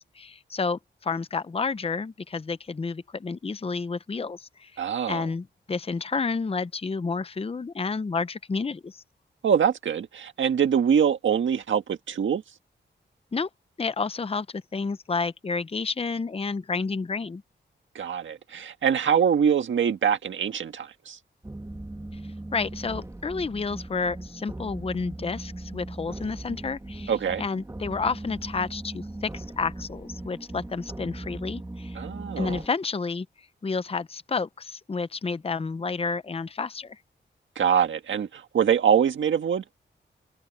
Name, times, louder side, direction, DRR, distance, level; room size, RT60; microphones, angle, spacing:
voice 1, 0.0-4.8 5.1-9.0 13.3-13.5 13.8-17.4 22.1-22.2 22.5-27.1 27.4-32.0 32.4-33.3 33.6-37.0, left 4 dB, 30° left, 0.7 m, -30 dB
voice 2, 4.8-5.2 9.4-12.4 17.9-21.2 27.1-27.4 31.9-32.6 37.5-39.6, right 8 dB, 85° right, 1.6 m, -24 dB
sound 1, 21.4-32.7, right 1 dB, 15° right, 2.6 m, -39 dB
cardioid pair, 80°, 19 cm